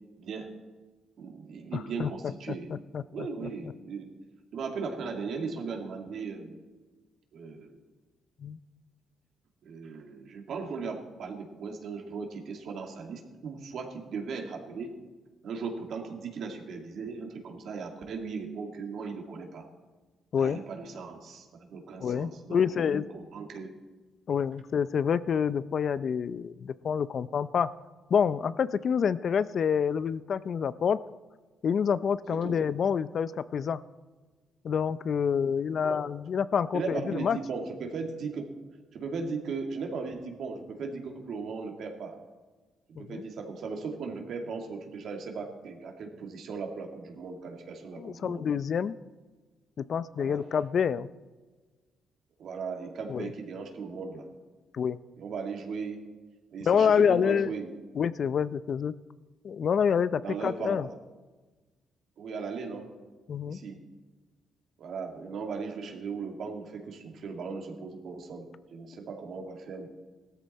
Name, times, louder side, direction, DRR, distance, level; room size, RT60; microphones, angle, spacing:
voice 1, 0.2-0.5 1.2-2.7 3.1-4.1 4.5-6.6 7.3-7.8 9.6-15.0 15.4-19.7 20.4-23.7 32.3-32.6 35.8-36.0 36.7-38.5 38.9-42.2 42.9-48.4 50.2-50.4 52.4-54.3 55.2-56.0 56.5-57.7 60.2-61.0 62.2-62.9 63.5-63.8 64.8-69.9, right 5 dB, 65° right, 3 dB, 2.2 m, -37 dB
voice 2, 1.7-2.3 2.7-3.5 8.4-8.6 20.3-20.6 22.0-23.0 24.3-27.7 28.1-31.0 31.6-33.8 34.6-37.4 43.0-43.2 48.0-49.0 49.8-51.1 53.1-53.3 54.7-55.0 56.6-57.5 58.0-58.9 59.4-60.9 63.3-63.6, left 7 dB, 55° left, 16 dB, 0.5 m, -27 dB
16.5 x 13.0 x 4.2 m, 1.3 s
cardioid pair, 90°, 0 cm